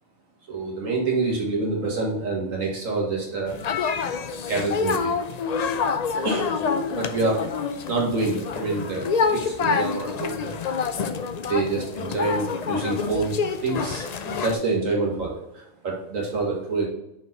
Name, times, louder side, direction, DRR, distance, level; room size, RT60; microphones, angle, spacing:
voice 1, 0.5-3.5 4.5-5.1 6.2-6.6 6.9-7.4 7.9-10.5 11.5-13.3 13.6-16.9, right 3 dB, 85° right, -2 dB, 2.2 m, -27 dB
sound 1, 3.5-14.6, left 5 dB, 70° left, 0.3 m, -27 dB
6.0 x 4.5 x 4.2 m, 0.87 s
omnidirectional pair, 1.3 m